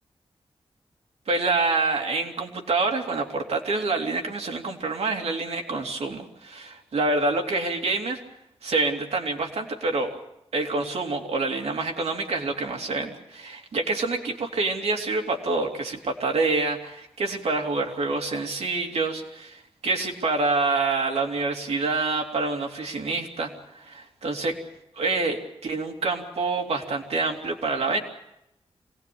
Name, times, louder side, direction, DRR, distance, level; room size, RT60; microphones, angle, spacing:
voice 1, 1.3-8.2 8.6-10.2 10.5-24.6 25.0-28.0, right 3 dB, 80° right, 2 dB, 2.9 m, -27 dB
25.0 x 18.0 x 8.6 m, 0.83 s
wide cardioid pair, 100°, 11 cm